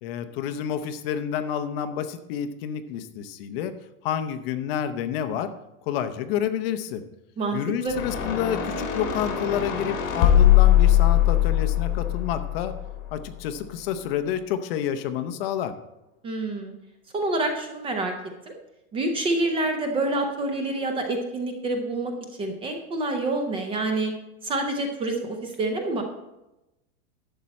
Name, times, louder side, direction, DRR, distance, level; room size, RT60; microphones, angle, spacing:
voice 1, 0.0-3.7 4.0-5.5 5.9-7.0 7.5-12.7 13.1-15.7, left 9 dB, 45° left, 10 dB, 0.7 m, -29 dB
voice 2, 7.4-8.0 16.2-16.8 17.1-18.1 18.5-18.6 18.9-22.1 22.4-24.1 24.4-26.0, right 2 dB, 15° right, 4 dB, 0.5 m, -27 dB
sound 1, 7.9-13.2, left 12 dB, 65° left, 2.3 m, -21 dB
11.5 x 7.5 x 4.2 m, 0.94 s
supercardioid pair, 165°, 42 cm